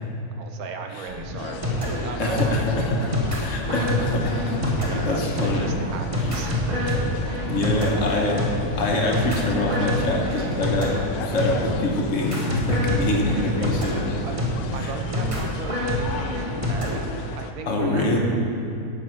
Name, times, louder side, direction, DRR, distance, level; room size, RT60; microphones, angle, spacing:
voice 1, 0.4-1.6 1.9-3.1 4.6-6.8 7.3-7.5 14.2-14.4 14.7-18.2, right 5 dB, 75° right, 5 dB, 1.0 m, -37 dB
sound 1, 1.1-17.0, left 1 dB, 25° right, 0.9 m, -27 dB
sound 2, 1.4-17.5, left 5 dB, 75° left, 1.0 m, -37 dB
voice 2, 2.2-3.1 3.4-4.8 5.0-5.7 7.5-8.4 8.7-10.9 11.2-14.2 14.8-14.9 17.7-18.2, left 1 dB, 55° left, 0 dB, 1.3 m, -24 dB
9.5 x 4.7 x 6.3 m, 2.6 s
omnidirectional pair, 1.7 m